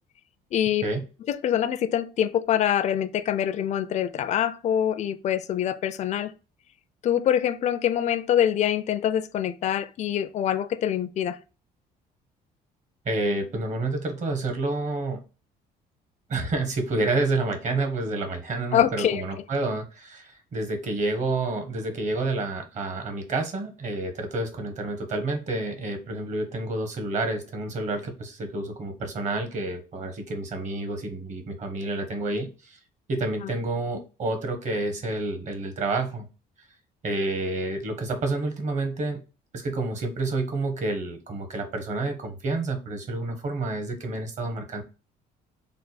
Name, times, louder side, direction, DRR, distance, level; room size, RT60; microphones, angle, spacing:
voice 1, 0.5-0.8 1.3-6.3 7.0-11.4 18.7-19.2, left 10 dB, 45° left, 0.4 m, -25 dB
voice 2, 13.0-15.2 16.3-32.8 33.1-36.3 37.0-39.2 39.5-44.8, right 2 dB, 45° right, 1.1 m, -29 dB
3.3 x 2.2 x 4.1 m
cardioid pair, 110°, 17 cm